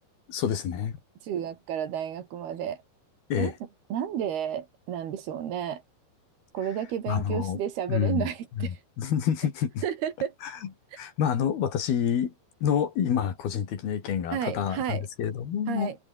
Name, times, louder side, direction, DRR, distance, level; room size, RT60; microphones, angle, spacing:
voice 1, 0.3-1.0 3.3-3.5 7.1-7.6 7.9-8.3 8.6-9.8 10.4-10.5 11.0-12.3 12.6-15.9, left 8 dB, 70° left, 4.8 m, -28 dB
voice 2, 1.2-2.8 3.4-3.5 3.9-5.8 6.5-8.8 9.8-10.3 14.3-15.0 15.7-16.0, right 9 dB, 75° right, 4.2 m, -31 dB
omnidirectional pair, 4.7 m